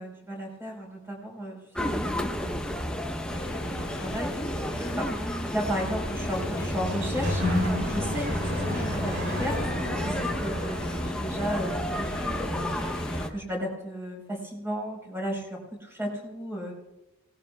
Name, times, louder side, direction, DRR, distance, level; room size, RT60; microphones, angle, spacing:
voice 1, 0.0-2.6 3.5-4.4 4.7-5.1 5.5-7.4 7.7-9.6 10.0-12.7 13.1-16.7, equal, 10° right, -1 dB, 4.5 m, -34 dB
sound 1, 1.7-13.3, equal, 5° left, 0.9 m, -32 dB
sound 2, 3.3-13.3, left 3 dB, 55° left, 0.9 m, -42 dB
Sliding door, 6.0-11.2, left 1 dB, 60° right, 5.4 m, -31 dB
24.5 x 19.0 x 2.4 m, 0.97 s
head